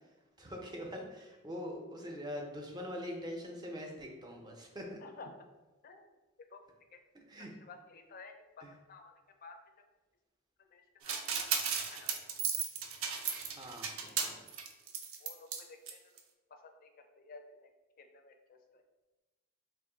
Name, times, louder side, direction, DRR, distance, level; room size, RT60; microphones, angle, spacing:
voice 1, 0.4-5.0 7.3-7.5 8.6-8.7 13.5-14.4, equal, 20° right, 1 dB, 0.5 m, -43 dB
voice 2, 5.0-5.5 5.8-6.1 6.5-6.6 6.9-7.0 7.4-9.1 9.4-9.6 10.6-12.1 14.1-14.2 15.2-16.0 16.5-16.9 17.2-17.7 18.0-18.8, left 3 dB, 45° left, 6 dB, 0.4 m, -53 dB
sound 1, 11.1-15.6 15.9-16.0 16.2-16.3, right 6 dB, 75° right, 0.4 m, -35 dB
2.9 x 2.5 x 3.8 m, 1.1 s
head